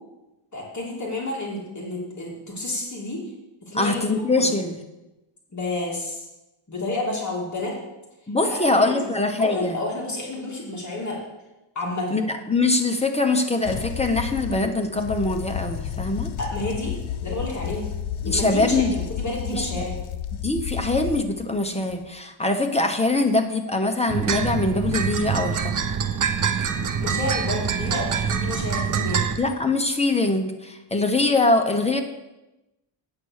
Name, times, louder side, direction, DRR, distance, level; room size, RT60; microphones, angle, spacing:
voice 1, 0.5-3.2 3.6-4.5 5.5-6.3 6.7-7.7 8.4-9.1 9.4-11.2 11.7-12.2 16.4-17.0 17.2-17.8 18.2-20.0 27.0-29.2, left 2 dB, 35° left, -2 dB, 2.5 m, -30 dB
voice 2, 3.7-4.8 8.3-9.8 12.1-16.3 18.3-19.0 19.5-19.7 20.4-25.7 29.4-32.0, left 2 dB, 15° left, 4 dB, 0.8 m, -23 dB
sound 1, 13.7-21.6 21.9-22.1, left 10 dB, 70° left, 0.7 m, -32 dB
sound 2, 24.1-29.4, right 7 dB, 40° right, 0.7 m, -25 dB
8.6 x 8.3 x 6.4 m, 1.0 s
wide cardioid pair, 150°, 49 cm